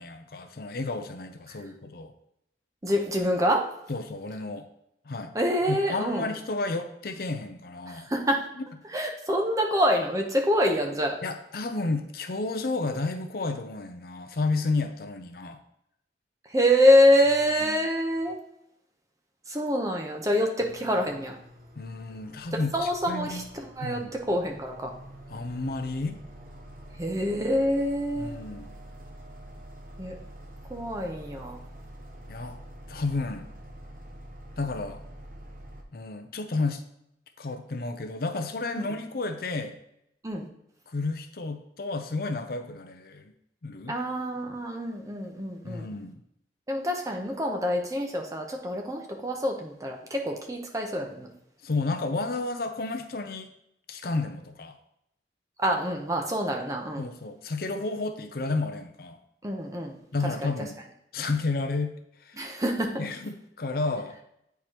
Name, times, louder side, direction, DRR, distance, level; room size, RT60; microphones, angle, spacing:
voice 1, 0.0-2.1 3.9-4.7 5.0-5.3 5.7-8.1 8.5-8.6 11.2-15.6 17.5-17.8 21.8-23.4 23.8-24.2 25.3-26.2 28.2-28.7 32.3-32.6 32.9-33.5 34.6-35.0 35.9-36.8 37.4-39.8 40.9-43.3 43.6-44.0 45.6-46.2 51.6-53.5 53.9-54.8 57.0-59.2 60.1-60.8 61.1-61.9 62.2-62.5 63.0-64.2, left 3 dB, 55° left, 7 dB, 0.6 m, -31 dB
voice 2, 2.8-3.7 5.3-6.3 7.9-8.5 8.9-11.2 16.5-18.4 19.5-21.4 22.7-23.4 23.8-24.0 24.3-24.9 27.0-28.4 30.0-30.2 30.7-31.6 38.7-38.9 40.2-40.5 43.9-45.9 46.7-51.3 55.6-57.1 59.4-60.0 60.4-60.5 62.4-63.0, equal, 20° right, 2 dB, 0.8 m, -26 dB
sound 1, 20.6-35.8, right 1 dB, 50° right, 0.8 m, -46 dB
8.5 x 4.6 x 2.9 m, 0.78 s
head